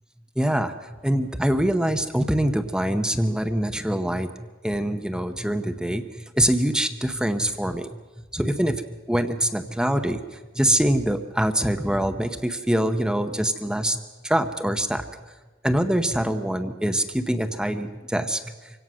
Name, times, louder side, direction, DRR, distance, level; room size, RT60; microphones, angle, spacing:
voice 1, 0.4-4.3 4.6-6.0 6.3-7.9 8.3-8.8 9.1-10.2 10.5-15.0 15.6-18.4, right 1 dB, 5° right, 7 dB, 0.8 m, -24 dB
24.5 x 17.0 x 6.2 m, 1.2 s
head